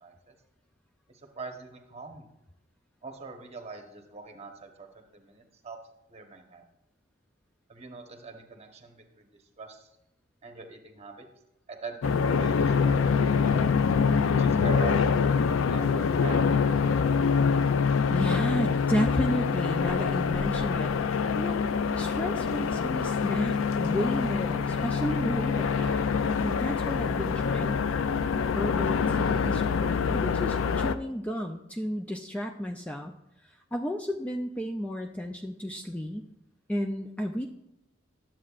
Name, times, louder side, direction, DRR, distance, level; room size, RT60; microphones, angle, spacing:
voice 1, 0.0-0.3 1.1-2.3 3.0-5.8 6.1-6.6 7.7-9.9 10.4-11.3 11.7-13.6 14.2-16.7, right 4 dB, 35° right, 4 dB, 1.1 m, -43 dB
sound 1, 12.0-30.9, left 5 dB, 85° left, 0.4 m, -25 dB
voice 2, 18.1-20.9 21.4-21.6 22.0-26.1 26.4-27.8 28.5-33.1 33.7-36.3 36.7-37.5, equal, 5° left, 3 dB, 0.4 m, -32 dB
11.0 x 7.5 x 2.4 m, 0.86 s
head